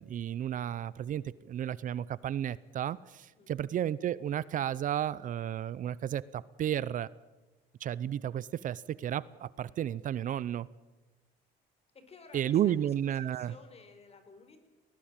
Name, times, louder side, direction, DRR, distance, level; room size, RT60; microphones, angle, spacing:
voice 1, 0.0-7.1 7.8-10.7 12.3-13.5, right 10 dB, 50° right, 20 dB, 0.6 m, -33 dB
voice 2, 3.3-3.7 11.9-14.6, left 4 dB, 35° left, 9 dB, 4.6 m, -54 dB
19.5 x 19.0 x 8.8 m, 1.1 s
cardioid pair, 110°, 17 cm